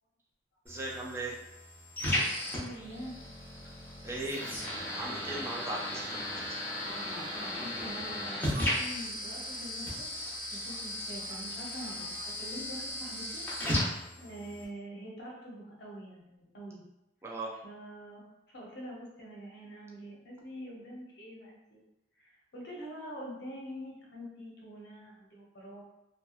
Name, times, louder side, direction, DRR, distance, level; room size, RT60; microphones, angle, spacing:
sound 1, 0.7-14.7, left 1 dB, 10° left, 0.8 m, -36 dB
voice 1, 0.7-1.4 4.0-4.5 4.8-6.2 6.5-6.6 17.2-17.5, right 2 dB, 15° right, -3 dB, 0.3 m, -38 dB
voice 2, 2.5-3.2 7.3-10.1 10.5-13.4 14.2-16.8 17.6-21.8 22.2-25.8, equal, 65° left, -2 dB, 0.7 m, -45 dB
sound 2, 2.8-3.0 3.4-8.8 9.3-9.6 9.8-10.3 10.6-10.8 11.2-11.3 11.7-12.2, left 1 dB, 40° left, 1.1 m, -51 dB
2.7 x 2.3 x 2.3 m, 0.90 s
head